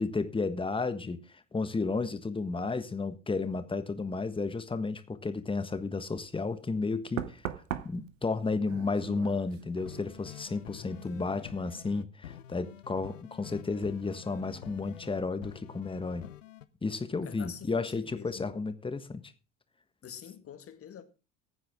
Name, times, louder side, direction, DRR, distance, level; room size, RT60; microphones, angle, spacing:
voice 1, 0.0-7.4 7.8-16.2 16.8-19.2, left 4 dB, 15° left, 1.4 m, -32 dB
Knock, 6.1-6.3 7.2-10.6 10.9-11.3, right 11 dB, 80° right, 1.0 m, -41 dB
sound 1, 9.8-16.6, left 11 dB, 80° left, 0.8 m, -48 dB
voice 2, 10.7-11.1 17.2-18.6 20.0-21.0, left 8 dB, 35° left, 2.0 m, -47 dB
15.5 x 9.0 x 3.6 m
figure-of-eight pair, 70°, 38 cm